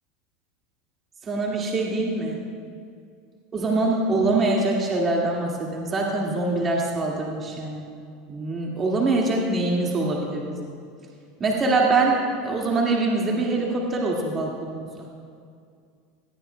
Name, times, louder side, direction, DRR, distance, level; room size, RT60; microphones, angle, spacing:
voice 1, 1.3-2.4 3.5-7.9 8.3-10.6 11.4-15.1, right 2 dB, 30° right, -2 dB, 1.9 m, -24 dB
19.0 x 13.5 x 2.2 m, 2.3 s
supercardioid pair, 105°, 0 cm